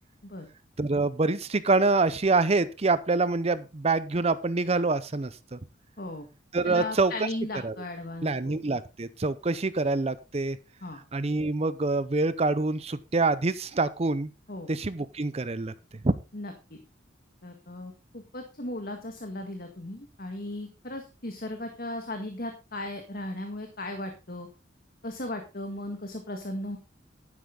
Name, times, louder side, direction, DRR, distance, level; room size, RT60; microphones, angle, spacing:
voice 1, 0.8-5.6 6.5-7.1 7.6-7.7 8.2-10.6 11.1-14.3 14.7-15.7 16.0-16.1, right 3 dB, 35° right, 15 dB, 0.6 m, -26 dB
voice 2, 6.6-8.5 10.8-11.0 14.5-14.7 16.3-16.8 17.4-24.5 25.0-26.8, left 1 dB, 50° left, 5 dB, 1.8 m, -37 dB
11.5 x 9.9 x 3.8 m, 0.28 s
head